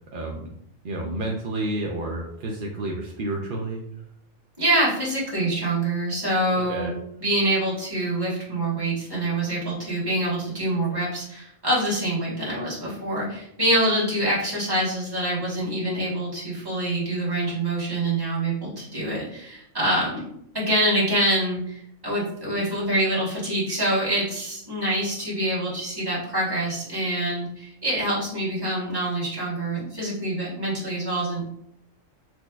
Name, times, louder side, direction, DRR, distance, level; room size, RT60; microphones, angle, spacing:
voice 1, 0.1-0.5 0.8-3.8 6.5-6.9, right 2 dB, 65° right, -1 dB, 0.5 m, -30 dB
voice 2, 4.6-6.9 7.2-20.2 20.5-31.5, right 1 dB, 20° right, -7 dB, 1.3 m, -25 dB
6.0 x 2.1 x 2.3 m, 0.75 s
omnidirectional pair, 1.3 m